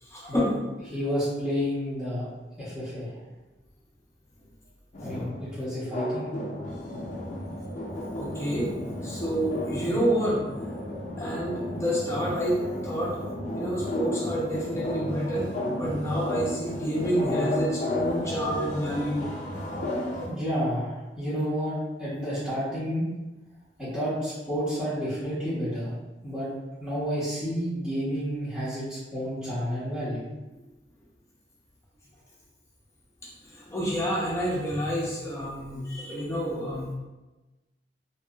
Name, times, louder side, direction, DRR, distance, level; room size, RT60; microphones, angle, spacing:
voice 1, 0.0-0.5 8.1-8.7 9.0-10.4 11.2-13.2 13.5-19.2 33.5-36.9, equal, 15° left, -6 dB, 0.8 m, -28 dB
voice 2, 0.9-2.3 2.6-3.1 5.0-6.4 20.2-23.0 23.8-25.9 26.2-26.5 26.8-30.2, equal, 5° right, -15 dB, 1.1 m, -30 dB
sound 1, 4.9-20.3, left 1 dB, 45° left, 0.5 m, -33 dB
2.9 x 2.9 x 2.4 m, 1.1 s
head